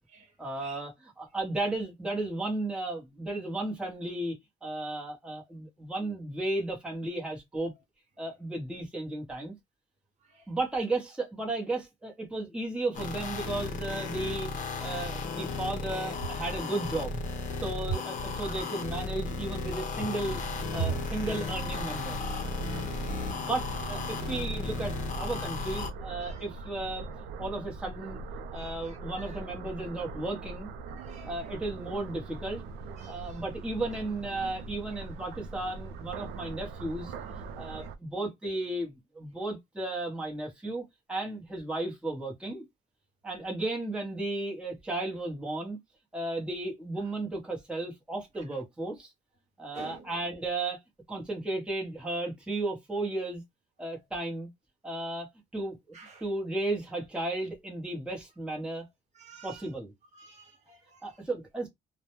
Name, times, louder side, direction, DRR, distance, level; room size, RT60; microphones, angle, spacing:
voice 1, 0.4-4.4 4.6-7.7 8.2-9.5 10.5-17.2 17.6-20.4 20.7-22.2 22.6-22.8 23.4-27.1 27.4-28.2 28.5-30.7 31.3-32.6 33.1-37.1 37.5-40.8 41.1-42.6 43.2-45.8 46.1-49.1 49.6-50.8 51.1-53.4 53.8-54.5 54.8-55.3 55.5-56.0 56.2-58.9 59.4-59.9 61.0-61.7, right 2 dB, 5° right, 0.8 m, -34 dB
sound 1, 12.9-25.9, left 3 dB, 50° left, 0.7 m, -35 dB
sound 2, 20.3-38.0, right 4 dB, 80° right, 0.4 m, -42 dB
voice 2, 30.9-31.3 33.0-33.2 37.5-37.6 49.7-50.0 55.9-56.1 59.2-59.6 60.2-61.0, right 3 dB, 45° right, 0.9 m, -48 dB
2.1 x 2.1 x 2.9 m
cardioid pair, 110°, 17 cm